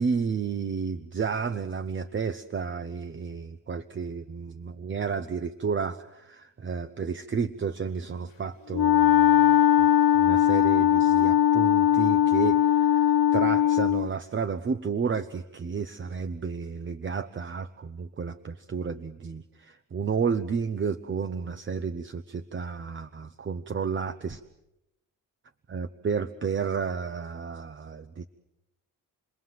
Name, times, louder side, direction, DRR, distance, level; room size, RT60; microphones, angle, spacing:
voice 1, 0.0-9.9 10.1-24.4 25.7-28.3, right 6 dB, 35° right, 10 dB, 0.9 m, -32 dB
Wind instrument woodwind instrument, 8.7-14.1, left 11 dB, 75° left, 1.0 m, -20 dB
29.0 x 21.0 x 7.7 m, 0.90 s
cardioid pair, 110°, 34 cm